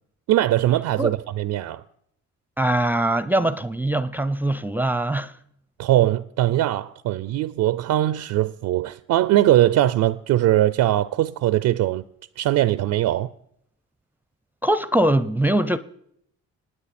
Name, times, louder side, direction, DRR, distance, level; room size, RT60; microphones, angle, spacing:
voice 1, 0.3-1.8 5.8-12.0 12.4-13.3, right 14 dB, 80° right, 0.5 m, -21 dB
voice 2, 2.6-5.3 14.6-15.8, right 1 dB, 5° right, 0.5 m, -22 dB
26.5 x 9.5 x 4.2 m
cardioid pair, 90°, 30 cm